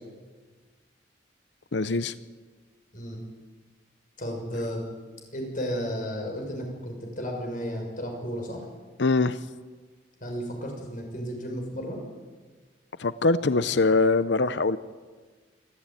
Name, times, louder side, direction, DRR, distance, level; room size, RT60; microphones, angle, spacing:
voice 1, 1.7-2.1 9.0-9.4 13.0-14.8, left 3 dB, 75° left, 15 dB, 0.8 m, -23 dB
voice 2, 4.2-4.8 5.3-8.6 10.2-12.0, equal, 45° left, 1 dB, 6.4 m, -33 dB
27.0 x 14.0 x 9.2 m, 1.4 s
head